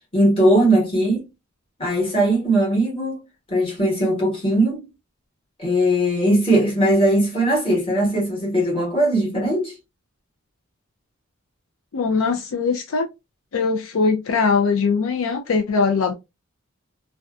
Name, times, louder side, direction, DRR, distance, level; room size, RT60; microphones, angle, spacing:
voice 1, 0.1-1.3 1.8-3.2 3.5-4.9 5.6-9.7, right 1 dB, 25° left, 1.2 m, -19 dB
voice 2, 11.9-13.1 13.5-16.1, left 4 dB, 75° left, 0.4 m, -21 dB
2.6 x 2.2 x 2.3 m
head